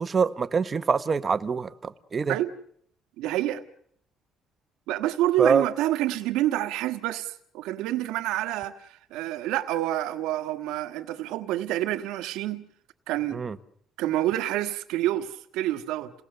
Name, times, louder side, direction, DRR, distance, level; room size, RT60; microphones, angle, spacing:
voice 1, 0.0-2.4 5.4-5.7 13.3-13.6, right 5 dB, 30° right, 1.0 m, -25 dB
voice 2, 3.2-3.6 4.9-12.7 13.1-13.4 14.0-16.1, right 14 dB, 90° right, 1.4 m, -28 dB
29.0 x 18.5 x 6.7 m
cardioid pair, 130°, 0 cm